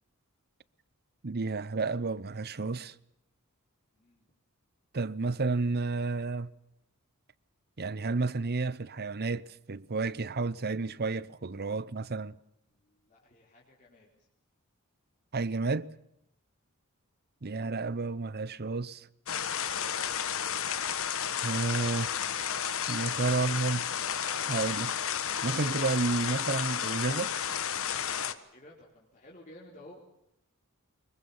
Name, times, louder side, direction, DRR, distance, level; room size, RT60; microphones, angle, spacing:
voice 1, 1.2-2.9 4.9-6.5 7.8-12.4 15.3-15.9 17.4-19.1 21.4-22.2 22.9-23.8 24.5-24.9 25.4-27.3, right 3 dB, 45° right, 0.8 m, -31 dB
voice 2, 3.9-4.2 12.7-14.3 28.5-30.0, left 1 dB, 35° left, 4.1 m, -54 dB
sound 1, 19.3-28.3, left 8 dB, 65° left, 1.5 m, -32 dB
24.5 x 22.5 x 7.2 m
head